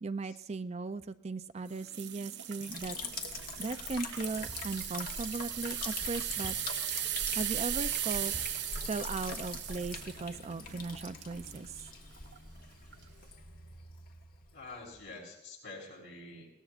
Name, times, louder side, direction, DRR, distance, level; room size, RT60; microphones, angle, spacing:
voice 1, 0.0-3.0 3.6-6.6 7.4-8.3 8.8-11.8, right 4 dB, 35° right, 12 dB, 0.4 m, -37 dB
sound 1, 1.7-11.6 12.2-12.4 12.9-13.0, right 11 dB, 65° right, 0.8 m, -38 dB
Liquid, 2.6-15.1, left 4 dB, 50° left, 1.5 m, -43 dB
sound 2, 4.5-4.9 6.4-6.8 8.3-8.7, equal, 10° right, 0.9 m, -48 dB
voice 2, 14.5-16.5, left 3 dB, 70° left, -1 dB, 6.8 m, -47 dB
21.0 x 18.5 x 2.5 m, 0.80 s
head